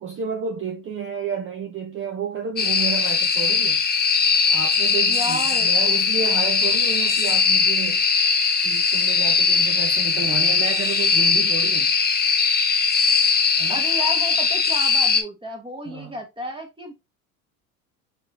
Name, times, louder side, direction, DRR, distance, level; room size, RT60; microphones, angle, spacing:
voice 1, 0.0-3.8 4.5-8.0 8.6-11.9 13.6-13.8 15.9-16.2, right 6 dB, 30° right, 0.7 m, -31 dB
sound 1, 2.6-15.2, left 5 dB, 25° left, 0.8 m, -20 dB
voice 2, 5.1-5.7 13.7-16.9, equal, 10° right, 1.2 m, -32 dB
4.0 x 3.5 x 2.7 m
hypercardioid pair, 80°, 42 cm